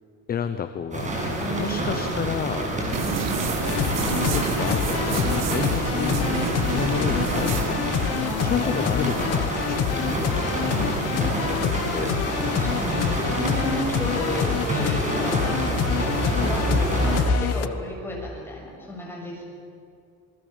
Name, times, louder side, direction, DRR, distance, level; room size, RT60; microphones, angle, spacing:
voice 1, 0.3-1.1 1.6-3.7 4.0-6.3 6.7-8.0 8.4-10.5 11.5-12.1, left 7 dB, 30° left, 10 dB, 0.9 m, -31 dB
sound 1, 0.9-17.2, right 1 dB, 25° right, 6.8 m, -27 dB
voice 2, 1.4-1.8 3.0-3.4 8.2-8.7 10.6-11.7 12.5-15.6 16.0-19.4, left 1 dB, 5° left, -2 dB, 6.9 m, -34 dB
sound 2, 2.9-13.1, right 8 dB, 55° right, 2.0 m, -32 dB
sound 3, 3.6-17.7, left 11 dB, 55° left, 1.1 m, -28 dB
28.0 x 20.0 x 7.4 m, 2.4 s
cardioid pair, 150°, 30 cm